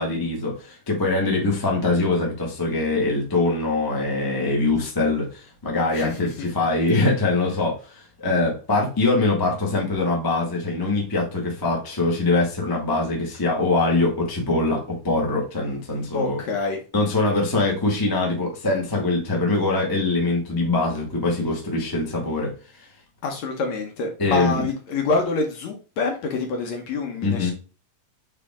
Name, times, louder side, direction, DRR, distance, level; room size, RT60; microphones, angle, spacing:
voice 1, 0.0-16.4 16.9-22.8 24.2-24.6 27.2-27.5, left 2 dB, 25° left, -1 dB, 0.5 m, -23 dB
voice 2, 5.9-6.3 16.1-16.8 19.3-19.4 23.2-27.5, left 3 dB, 65° left, 3 dB, 1.9 m, -26 dB
5.7 x 4.9 x 3.6 m, 0.34 s
omnidirectional pair, 4.0 m